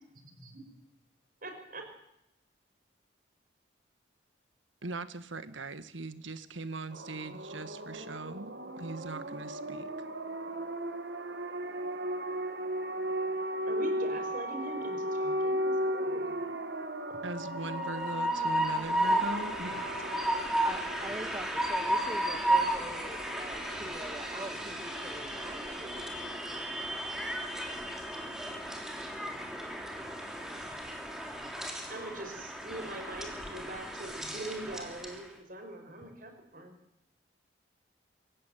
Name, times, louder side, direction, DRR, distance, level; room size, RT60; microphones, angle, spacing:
voice 1, 0.2-0.6 1.4-1.9 13.7-16.6 17.1-17.2 31.9-36.8, right 2 dB, 45° right, 5 dB, 5.4 m, -43 dB
voice 2, 4.8-9.9 17.2-19.9, right 3 dB, 90° right, 12 dB, 1.7 m, -40 dB
sound 1, 6.9-26.3, right 1 dB, 65° right, 2.2 m, -37 dB
Train, 17.4-35.2, right 1 dB, 5° right, 3.4 m, -34 dB
voice 3, 20.6-26.4, right 1 dB, 20° right, 8 dB, 1.9 m, -44 dB
26.0 x 15.5 x 9.3 m, 0.80 s
head